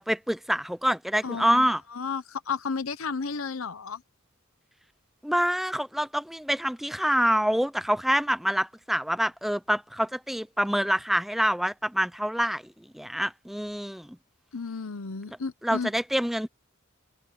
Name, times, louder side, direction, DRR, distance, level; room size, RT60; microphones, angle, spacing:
voice 1, 0.0-1.8 5.2-12.6 12.9-14.2 15.3-15.4 15.6-16.5, equal, ahead, 0.5 m, -26 dB
voice 2, 1.2-4.0 14.5-15.9, left 5 dB, 80° left, 0.9 m, -33 dB
head